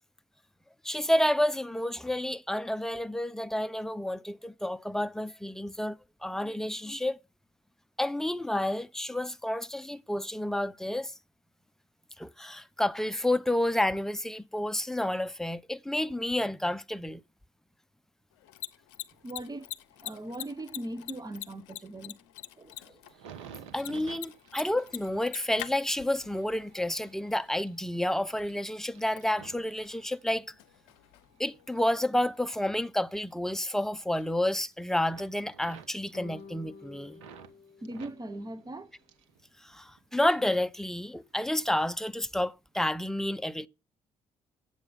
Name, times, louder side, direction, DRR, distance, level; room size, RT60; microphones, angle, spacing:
voice 1, 0.8-6.0 6.2-7.2 8.0-11.1 12.2-17.2 23.7-30.4 31.4-37.2 39.6-43.7, left 1 dB, 5° left, 0.7 m, -30 dB
Mechanisms, 18.3-31.9, left 14 dB, 80° left, 0.6 m, -46 dB
voice 2, 19.2-19.7 20.0-22.2 22.6-23.0 37.8-38.9, right 1 dB, 25° right, 1.3 m, -40 dB
sound 1, 23.0-30.7 31.1-33.7 34.0-34.7 35.0-37.5 37.8-39.4 39.7-40.4 41.0-41.2, right 8 dB, 85° right, 1.2 m, -53 dB
sound 2, 36.1-38.7, left 5 dB, 45° left, 1.0 m, -50 dB
8.8 x 7.6 x 5.4 m
hypercardioid pair, 45°, 15 cm